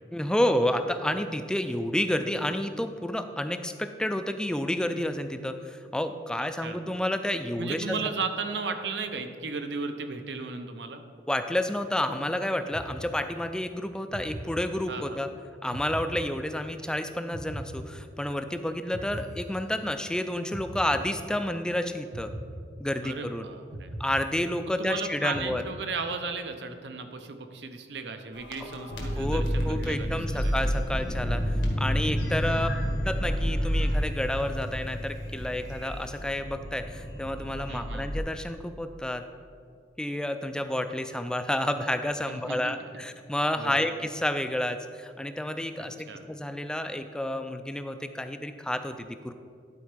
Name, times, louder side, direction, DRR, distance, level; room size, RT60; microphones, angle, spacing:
voice 1, 0.1-8.1 11.3-15.3 15.6-22.3 22.8-23.5 24.0-25.6 29.2-32.7 33.0-39.2 40.0-49.3, left 1 dB, 5° left, 8 dB, 0.3 m, -30 dB
voice 2, 7.6-11.0 14.9-15.2 23.0-23.9 24.8-30.5 32.5-32.8 37.7-38.1 42.3-42.9 43.6-43.9 45.8-46.3, right 4 dB, 75° right, 7 dB, 0.7 m, -35 dB
sound 1, 12.7-13.6 14.1-15.2 15.7-16.9 17.3-18.5 18.9-20.1 20.5-21.6 22.1-23.3 23.7-24.9 25.3-26.2, right 1 dB, 45° right, 0.8 m, -41 dB
sound 2, 28.3-38.2, equal, 85° left, 1.6 m, -30 dB
11.0 x 4.4 x 5.1 m, 2.2 s
head